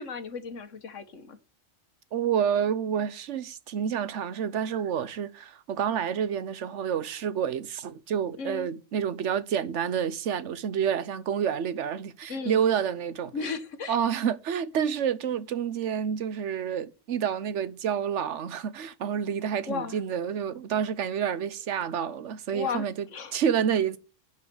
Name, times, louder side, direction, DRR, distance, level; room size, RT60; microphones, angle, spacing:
voice 1, 0.0-1.4 8.4-8.7 12.3-12.6 13.3-14.0 19.7-20.0 22.5-23.4, left 5 dB, 85° left, 1.6 m, -35 dB
voice 2, 2.1-13.3 13.9-23.1 23.3-24.0, right 8 dB, 75° right, 1.1 m, -29 dB
10.5 x 4.8 x 6.7 m
omnidirectional pair, 1.3 m